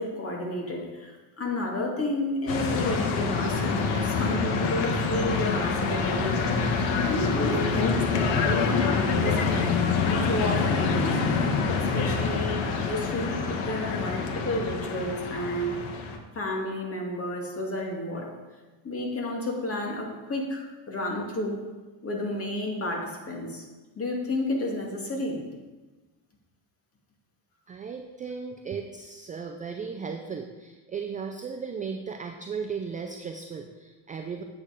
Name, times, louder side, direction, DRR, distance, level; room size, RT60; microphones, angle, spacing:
voice 1, 0.0-6.6 7.1-9.7 10.0-11.1 11.7-15.8 16.3-18.3 18.8-21.6 22.0-23.6 24.0-25.4, left 1 dB, 25° left, 0 dB, 2.2 m, -31 dB
sound 1, 2.5-16.2, left 5 dB, 65° left, 1.4 m, -26 dB
voice 2, 27.7-34.4, right 5 dB, 20° right, 5 dB, 0.3 m, -36 dB
8.7 x 8.3 x 4.9 m, 1.2 s
cardioid pair, 140°, 50 cm